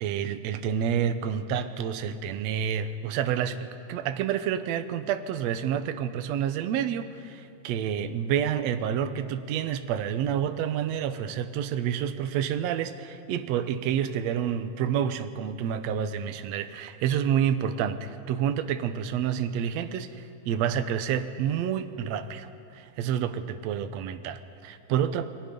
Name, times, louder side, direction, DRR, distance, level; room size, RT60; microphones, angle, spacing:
voice 1, 0.0-25.3, right 9 dB, 70° right, 10 dB, 1.8 m, -29 dB
29.0 x 22.0 x 5.3 m, 2.6 s
omnidirectional pair, 3.6 m